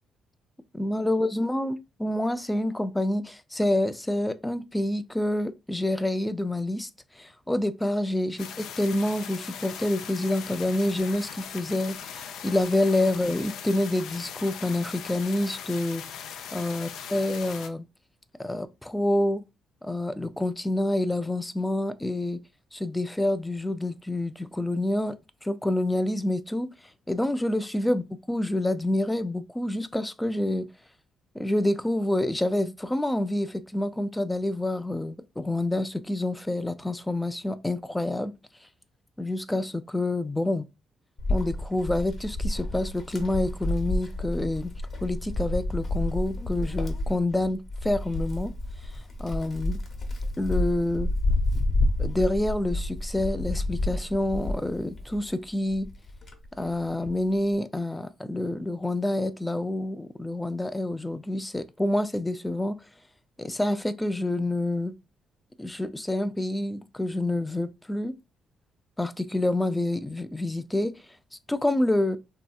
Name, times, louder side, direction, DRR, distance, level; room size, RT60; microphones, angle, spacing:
voice 1, 0.7-6.9 7.2-17.9 18.4-19.4 19.8-22.4 22.7-26.7 27.1-30.7 31.4-38.3 39.2-40.7 41.3-44.7 45.0-48.5 49.2-49.8 50.4-51.1 52.0-55.9 56.6-62.8 63.4-64.9 65.6-68.1 69.0-70.9 71.5-72.2, left 1 dB, 10° left, 0.3 m, -27 dB
sound 1, 8.4-17.7, left 8 dB, 80° left, 0.4 m, -40 dB
Wind, 41.2-55.3 55.7-57.2, left 1 dB, 45° left, 0.9 m, -29 dB
3.1 x 2.7 x 2.3 m
cardioid pair, 90°, 0 cm